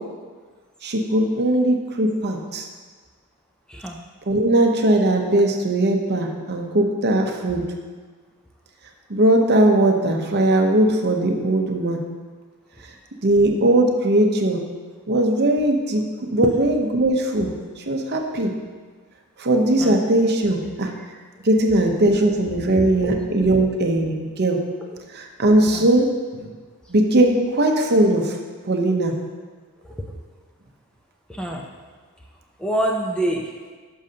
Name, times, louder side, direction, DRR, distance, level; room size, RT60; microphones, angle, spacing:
voice 1, 0.8-2.7 4.3-7.6 9.1-12.0 13.2-14.6 15.1-16.0 16.3-18.5 19.4-20.9 21.4-24.6 25.1-26.5 26.9-28.4 28.7-29.1, right 1 dB, 50° right, 3 dB, 0.8 m, -19 dB
voice 2, 31.3-31.7 32.6-33.5, right 1 dB, 5° left, 0 dB, 0.5 m, -26 dB
10.0 x 6.5 x 2.8 m, 1.5 s
head